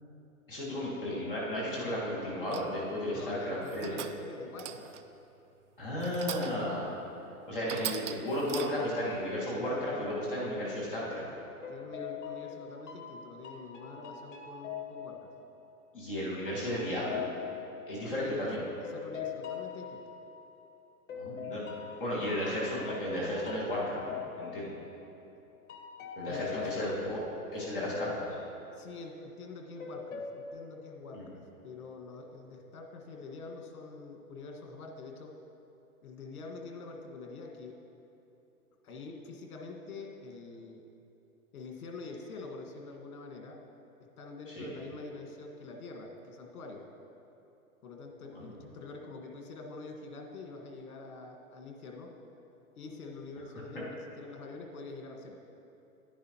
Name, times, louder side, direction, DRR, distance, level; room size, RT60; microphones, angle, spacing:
voice 1, 0.5-3.9 5.8-6.9 7.5-11.2 15.9-17.2 17.9-18.6 21.2-21.6 22.0-24.7 26.2-27.2 27.5-28.3 31.1-31.3 44.5-44.7 48.3-48.5, left 1 dB, ahead, -20 dB, 0.3 m, -34 dB
sound 1, 2.5-2.9 3.5-4.3 4.6-5.1 6.0-6.7 7.2-7.3 7.7-9.0, right 10 dB, 55° right, 0.5 m, -41 dB
voice 2, 3.1-4.9 11.7-15.3 18.0-20.0 26.3-26.9 27.7-27.9 28.7-35.3 36.0-37.8 38.8-40.8 41.5-43.6 44.2-46.8 47.8-52.1 52.8-55.4, left 3 dB, 75° left, 2 dB, 1.7 m, -45 dB
sound 2, 10.9-11.2 11.6-15.9 16.5-20.7 21.1-25.3 25.7-29.4 29.8-30.5, left 8 dB, 55° left, 1.5 m, -43 dB
10.5 x 10.0 x 3.0 m, 2.9 s
hypercardioid pair, 160°, 44 cm